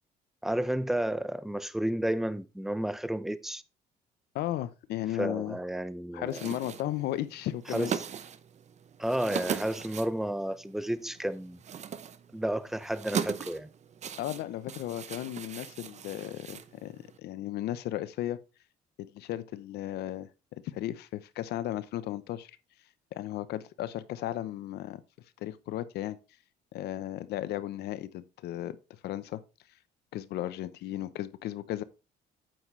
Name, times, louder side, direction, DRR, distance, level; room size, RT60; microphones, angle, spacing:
voice 1, 0.4-3.6 5.1-6.4 7.7-8.1 9.0-11.6 12.3-13.7, right 1 dB, ahead, 0.7 m, -31 dB
voice 2, 4.3-5.6 6.1-7.9 14.1-18.4 19.0-20.3 20.7-22.5 23.1-25.0 25.4-26.2 26.7-28.8 29.0-29.4 30.1-31.8, left 13 dB, 75° left, 0.9 m, -35 dB
sound 1, 6.3-17.2, right 8 dB, 40° right, 0.8 m, -39 dB
9.1 x 7.5 x 3.3 m
cardioid pair, 110°, 17 cm